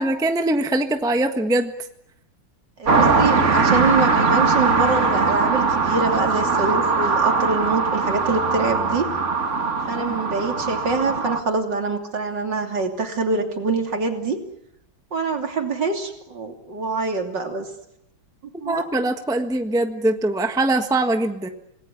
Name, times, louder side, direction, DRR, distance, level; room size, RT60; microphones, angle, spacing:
voice 1, 0.0-1.7 18.5-21.5, right 2 dB, ahead, 6 dB, 1.2 m, -22 dB
sound 1, 2.8-11.4, right 4 dB, 35° right, 2.0 m, -20 dB
voice 2, 2.8-9.1 9.9-14.4 15.1-17.7 18.6-18.8, right 4 dB, 55° right, 4 dB, 3.6 m, -25 dB
27.5 x 19.5 x 9.6 m, 0.82 s
omnidirectional pair, 2.2 m